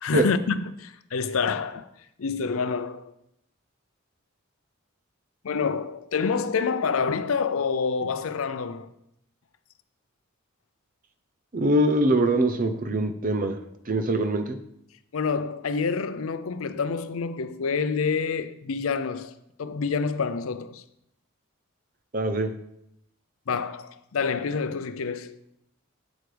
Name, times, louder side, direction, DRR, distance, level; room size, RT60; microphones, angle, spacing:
voice 1, 0.0-1.9 2.2-3.1 5.4-8.9 15.1-19.3 19.6-20.8 23.5-25.4, left 5 dB, 70° left, 0.5 m, -27 dB
voice 2, 11.5-13.6 13.9-14.6 22.1-22.5, right 1 dB, 40° right, 0.7 m, -23 dB
8.2 x 7.9 x 3.4 m
head